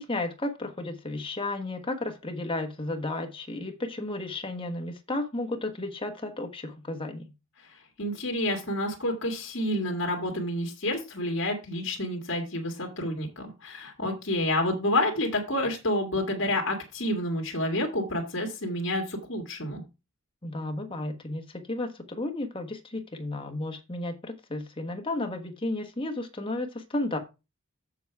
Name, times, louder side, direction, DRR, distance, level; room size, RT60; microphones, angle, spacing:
voice 1, 0.0-7.3 20.4-27.2, left 2 dB, 25° left, 5 dB, 1.3 m, -33 dB
voice 2, 7.7-19.8, left 1 dB, 55° left, 2 dB, 2.1 m, -29 dB
7.2 x 7.0 x 4.7 m, 0.27 s
head